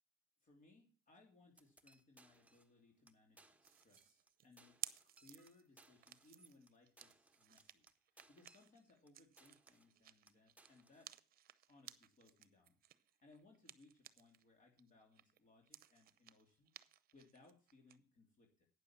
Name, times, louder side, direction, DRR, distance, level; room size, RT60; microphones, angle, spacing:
voice 1, 0.4-11.1 11.7-12.8 13.2-16.7 17.1-18.7, left 3 dB, 40° left, 2 dB, 2.9 m, -68 dB
sound 1, 1.6-2.8 3.1-3.2 3.4-4.3 4.6-9.1 9.4-10.0 10.3-11.1, right 2 dB, 5° right, 1.1 m, -68 dB
sound 2, 3.6-14.4 14.8-18.0, right 12 dB, 50° right, 0.8 m, -57 dB
9.4 x 6.9 x 7.2 m, 0.37 s
supercardioid pair, 90°, 19 cm